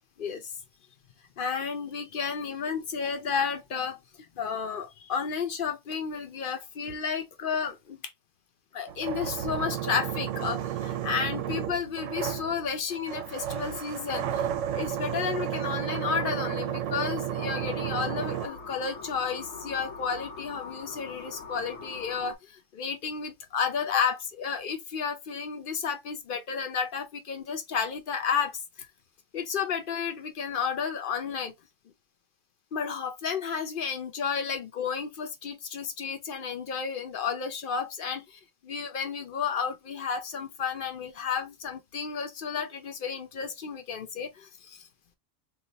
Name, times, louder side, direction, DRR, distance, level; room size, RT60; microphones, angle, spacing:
voice 1, 0.2-0.5 1.4-8.1 8.7-28.9 29.3-31.5 32.7-44.9, left 6 dB, 55° left, 0.7 m, -32 dB
sound 1, 8.9-18.5, right 10 dB, 80° right, 0.9 m, -32 dB
sound 2, 17.4-22.4, left 4 dB, 90° left, 1.2 m, -42 dB
2.8 x 2.3 x 3.9 m
omnidirectional pair, 1.3 m